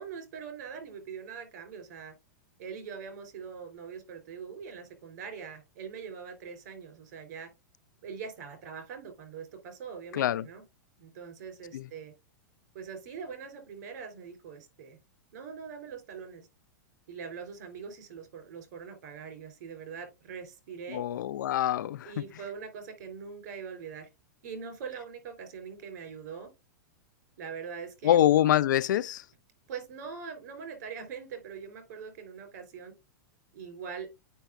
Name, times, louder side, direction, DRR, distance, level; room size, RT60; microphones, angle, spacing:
voice 1, 0.0-2.1 2.6-7.5 8.0-10.6 11.0-12.1 12.7-15.0 15.3-16.5 17.1-21.0 22.1-24.1 24.4-26.5 27.4-28.3 29.7-32.9 33.5-34.1, right 6 dB, 65° right, 3.5 m, -42 dB
voice 2, 10.1-10.5 11.7-11.9 20.9-22.2 28.0-29.2, left 12 dB, 80° left, 0.5 m, -25 dB
9.2 x 5.5 x 2.4 m
hypercardioid pair, 140°, 10 cm